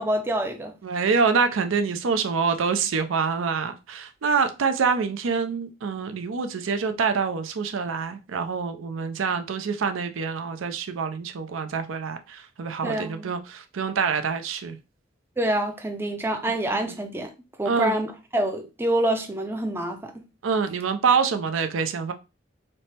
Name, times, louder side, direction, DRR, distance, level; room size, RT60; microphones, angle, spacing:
voice 1, 0.0-0.7 12.8-13.3 15.4-17.3 17.6-20.2, right 1 dB, 10° right, 0.4 m, -26 dB
voice 2, 0.8-14.8 16.7-17.0 17.7-17.9 20.4-22.1, right 5 dB, 85° right, 0.5 m, -26 dB
3.3 x 2.0 x 4.2 m
head